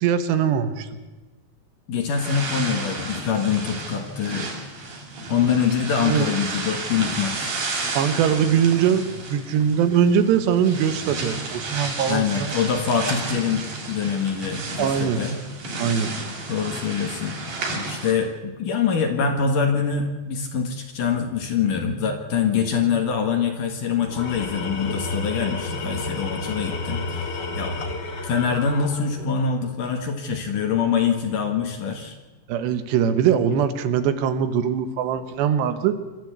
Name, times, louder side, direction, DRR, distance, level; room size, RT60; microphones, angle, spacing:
voice 1, 0.0-0.9 6.0-6.3 7.9-12.6 14.8-15.2 15.8-16.1 32.5-36.0, right 8 dB, 80° right, 10 dB, 3.2 m, -21 dB
voice 2, 1.9-4.5 5.3-7.6 12.1-15.4 16.5-17.4 17.9-27.7 28.2-32.1 33.5-33.6, left 6 dB, 60° left, 5 dB, 2.8 m, -24 dB
sound 1, 2.1-18.1, right 3 dB, 50° right, 5.1 m, -32 dB
Tools, 24.0-29.4, left 3 dB, 80° left, 0.9 m, -31 dB
26.5 x 13.0 x 8.1 m, 1.2 s
omnidirectional pair, 5.0 m